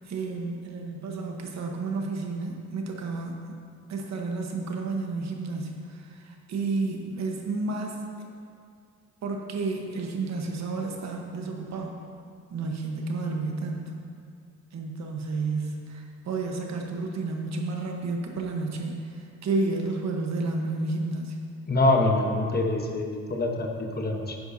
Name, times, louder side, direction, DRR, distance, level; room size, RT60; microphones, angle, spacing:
voice 1, 0.1-3.4 3.9-5.7 6.0-8.0 9.2-11.9 12.5-13.9 14.7-19.0 19.4-21.4, right 3 dB, 60° right, 1 dB, 1.3 m, -31 dB
voice 2, 21.7-24.4, left 2 dB, 30° left, 2 dB, 1.2 m, -25 dB
10.0 x 9.9 x 2.8 m, 2.3 s
cardioid pair, 90°, 30 cm